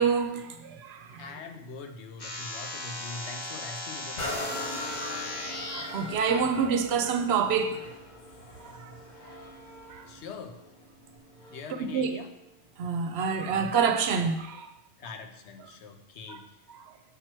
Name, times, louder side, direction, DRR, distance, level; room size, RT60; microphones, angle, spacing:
voice 1, 0.0-1.3 5.0-5.2 5.6-7.8 8.6-8.8 9.9-10.0 11.9-12.2 12.8-14.7 16.3-16.4, right 6 dB, 70° right, 0.9 m, -27 dB
voice 2, 1.1-4.5 10.1-10.6 11.5-12.3 15.0-16.4, left 4 dB, 85° left, 1.1 m, -42 dB
sound 1, 2.2-5.8, left 2 dB, 25° left, 0.7 m, -37 dB
sound 2, 4.2-11.8 12.4-12.5, left 1 dB, 45° left, 1.0 m, -40 dB
7.0 x 4.4 x 4.5 m
omnidirectional pair, 1.1 m